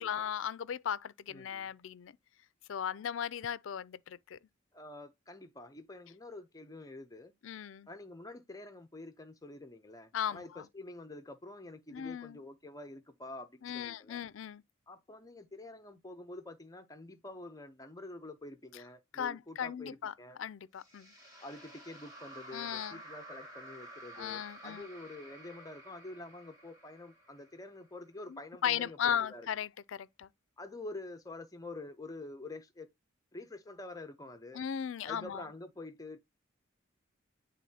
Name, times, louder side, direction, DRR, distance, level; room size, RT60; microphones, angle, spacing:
voice 1, 0.0-2.1 2.7-4.4 7.4-7.9 10.1-10.6 11.9-12.4 13.6-14.6 19.1-20.1 20.4-21.1 22.5-23.0 24.2-24.9 28.3-30.3 34.5-35.4, left 8 dB, 70° left, 0.4 m, -37 dB
voice 2, 1.3-1.7 4.7-7.3 7.9-14.2 14.9-20.4 21.4-29.5 30.6-32.9 33.3-34.6 35.1-36.2, left 2 dB, 20° left, 0.6 m, -47 dB
sound 1, 20.8-28.1, right 1 dB, 20° right, 1.4 m, -52 dB
10.5 x 3.6 x 2.8 m
head